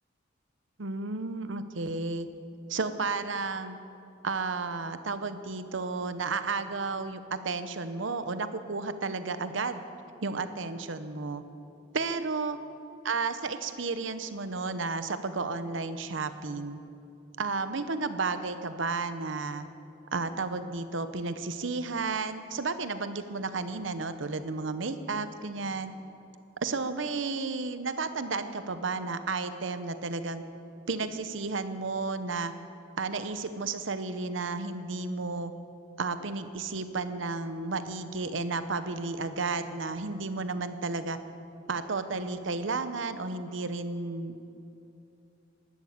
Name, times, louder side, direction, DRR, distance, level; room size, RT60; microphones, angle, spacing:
voice 1, 0.8-2.3 2.7-3.8 4.2-9.8 10.2-11.4 11.9-12.6 13.0-16.8 17.4-19.7 20.1-25.9 26.6-30.4 30.9-32.5 33.0-35.5 36.0-41.2 41.7-44.4, right 3 dB, 70° right, 11 dB, 0.9 m, -32 dB
12.5 x 12.5 x 8.5 m, 2.8 s
head